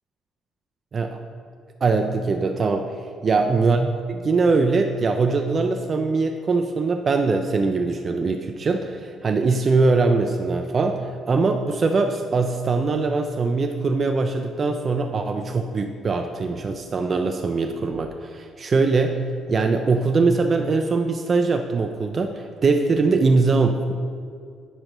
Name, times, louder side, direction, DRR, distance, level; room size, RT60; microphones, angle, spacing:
voice 1, 1.8-19.2 19.5-23.9, right 3 dB, 25° right, 4 dB, 0.3 m, -22 dB
9.1 x 6.3 x 3.0 m, 2.2 s
cardioid pair, 175°, 0 cm